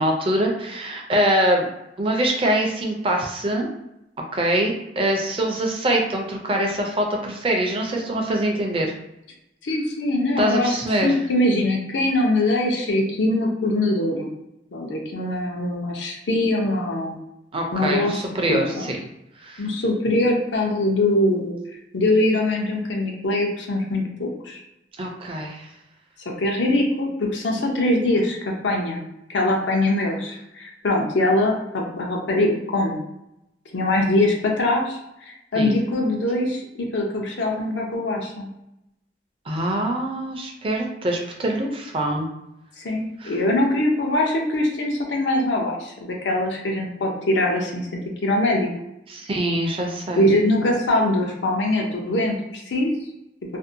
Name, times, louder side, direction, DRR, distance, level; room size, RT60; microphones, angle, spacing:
voice 1, 0.0-1.7 2.0-3.7 4.3-8.9 10.4-11.2 17.5-19.0 19.4-19.6 25.0-25.7 35.5-35.7 39.5-42.3 43.2-43.3 49.1-50.3, right 1 dB, 30° right, 1 dB, 0.4 m, -24 dB
voice 2, 9.6-14.3 14.7-17.2 17.7-18.2 18.5-18.9 19.6-21.5 21.9-24.6 26.3-29.0 29.3-33.0 33.7-35.0 35.3-38.5 42.8-48.7 50.2-52.9, left 1 dB, 85° left, 0 dB, 0.6 m, -22 dB
2.6 x 2.1 x 2.6 m, 0.86 s
head